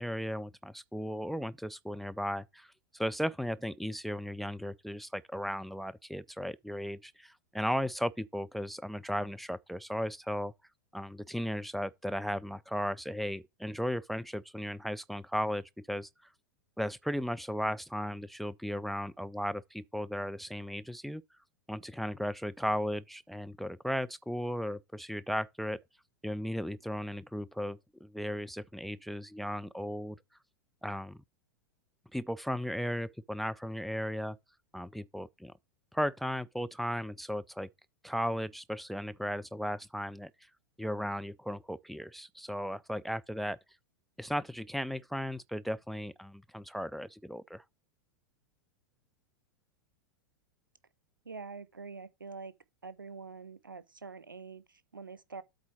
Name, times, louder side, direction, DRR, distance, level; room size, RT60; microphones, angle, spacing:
voice 1, 0.0-10.5 10.9-16.1 16.8-21.2 21.7-25.8 26.2-30.2 30.8-31.2 32.1-34.4 34.7-35.5 35.9-37.7 38.0-40.3 40.8-43.6 44.2-47.6, equal, ahead, 0.3 m, -36 dB
voice 2, 51.2-52.5 52.8-55.4, right 4 dB, 85° right, 0.7 m, -45 dB
8.2 x 3.8 x 5.9 m
figure-of-eight pair, 95°, 11 cm